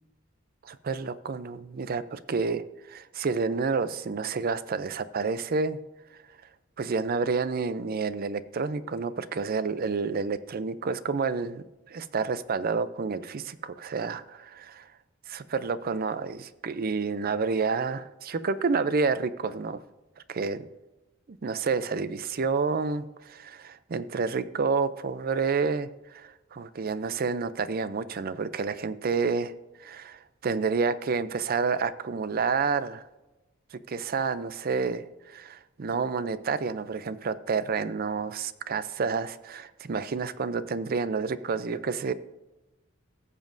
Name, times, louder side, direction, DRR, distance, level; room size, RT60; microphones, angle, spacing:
voice 1, 0.6-5.8 6.8-14.8 15.3-19.8 20.3-20.6 21.3-29.5 29.8-33.0 33.7-42.1, right 4 dB, 50° right, 14 dB, 0.5 m, -29 dB
16.5 x 7.3 x 2.6 m, 1.1 s
head